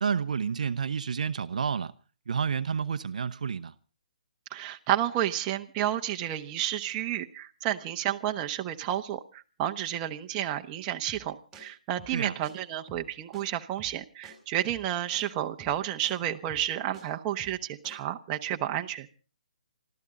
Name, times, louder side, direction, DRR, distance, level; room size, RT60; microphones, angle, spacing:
voice 1, 0.0-1.9 2.3-3.7 12.1-12.3, right 6 dB, 70° right, 0.8 m, -30 dB
voice 2, 4.5-19.1, right 12 dB, 25° right, 1.1 m, -31 dB
sound 1, 11.1-11.3 11.5-11.6 12.0-12.2 12.4-12.5 12.9-13.1 13.3-13.4 13.8-14.0 14.2-14.3 14.7-14.9 15.1-15.2 15.6-16.1 16.5-17.0 17.4-17.6 17.8-18.0, right 4 dB, 5° right, 4.7 m, -50 dB
27.5 x 13.5 x 3.8 m
hypercardioid pair, 145°, 4 cm